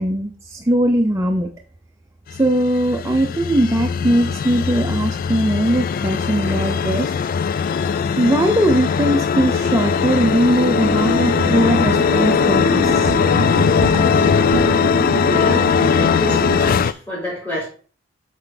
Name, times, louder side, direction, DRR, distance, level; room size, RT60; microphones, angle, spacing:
voice 1, 0.0-1.5 2.4-7.1 8.2-13.1, right 1 dB, 15° right, 0.6 m, -19 dB
sound 1, 2.3-16.9, left 6 dB, 45° left, 0.3 m, -19 dB
sound 2, 9.2-16.7, right 2 dB, 75° right, 0.7 m, -26 dB
voice 2, 15.2-17.7, equal, 10° left, 3.5 m, -28 dB
7.8 x 4.5 x 3.9 m
head